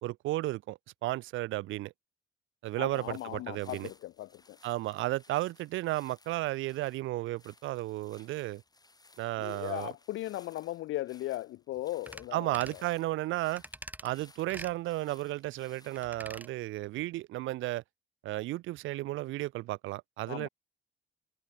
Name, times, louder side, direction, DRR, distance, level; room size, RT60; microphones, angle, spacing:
voice 1, 0.0-1.9 2.6-3.9 4.6-8.6 9.2-9.9 12.3-13.6 14.0-17.8 18.2-20.5, right 17 dB, 85° right, 0.5 m, -33 dB
sound 1, 2.6-16.1, left 3 dB, 20° left, 3.7 m, -62 dB
voice 2, 2.8-4.6 9.4-12.6 20.3-20.5, left 15 dB, 80° left, 0.7 m, -37 dB
sound 2, 12.1-12.3 12.5-12.8 13.6-14.1 14.5-14.8 16.0-16.5 16.8-16.9, right 1 dB, 10° right, 2.3 m, -45 dB
cardioid pair, 90°, 20 cm